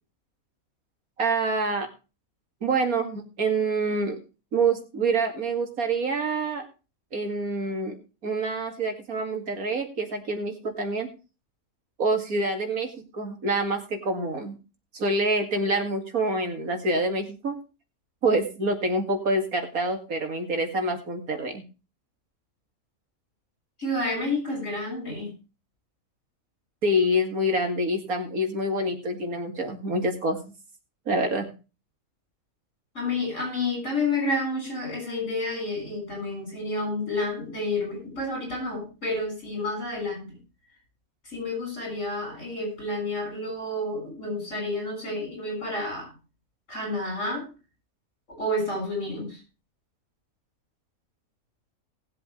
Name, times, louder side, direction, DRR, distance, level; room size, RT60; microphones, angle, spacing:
voice 1, 1.2-1.9 2.6-4.2 4.5-6.7 7.1-8.0 8.2-11.1 12.0-14.6 14.9-17.6 18.2-21.6 26.8-30.4 31.1-31.5, right 2 dB, 85° right, 4 dB, 2.7 m, -26 dB
voice 2, 23.8-25.3 32.9-40.4 41.3-46.1 46.7-47.5 48.4-49.4, left 2 dB, 60° left, 1 dB, 7.1 m, -30 dB
19.0 x 7.7 x 3.3 m, 0.32 s
omnidirectional pair, 1.5 m